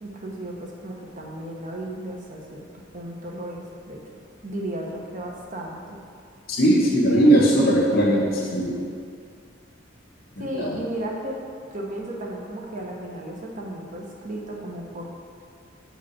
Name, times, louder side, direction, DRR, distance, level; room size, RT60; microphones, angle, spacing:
voice 1, 0.0-2.6 2.9-4.0 4.4-6.0 7.1-7.6 10.4-11.4 11.7-15.1, right 1 dB, 40° right, -1 dB, 1.1 m, -34 dB
voice 2, 6.5-8.8 10.4-10.8, right 1 dB, 55° left, -3 dB, 1.7 m, -19 dB
6.9 x 5.1 x 6.0 m, 2.2 s
head